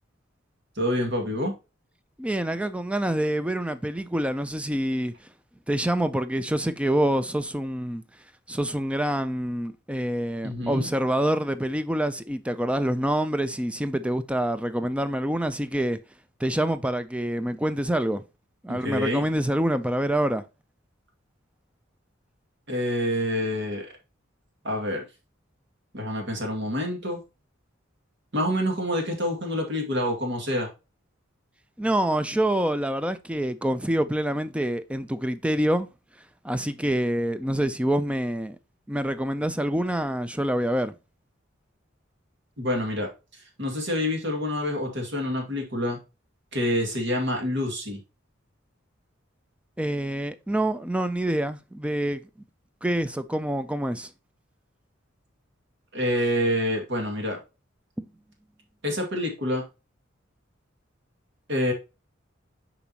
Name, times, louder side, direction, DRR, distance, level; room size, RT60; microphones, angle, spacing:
voice 1, 0.8-1.6 10.4-10.9 18.7-19.3 22.7-23.9 24.6-25.0 25.9-27.2 28.3-30.7 42.6-43.1 43.6-46.0 46.5-48.0 55.9-57.4 58.8-59.6 61.5-61.7, left 1 dB, 65° right, 2.2 m, -27 dB
voice 2, 2.2-5.1 5.7-8.0 8.5-16.0 16.4-18.2 18.6-20.4 31.8-35.9 36.4-38.6 38.9-40.9 49.8-52.2 52.8-54.1 58.0-58.1, right 1 dB, 5° right, 0.5 m, -26 dB
7.0 x 5.1 x 2.9 m
head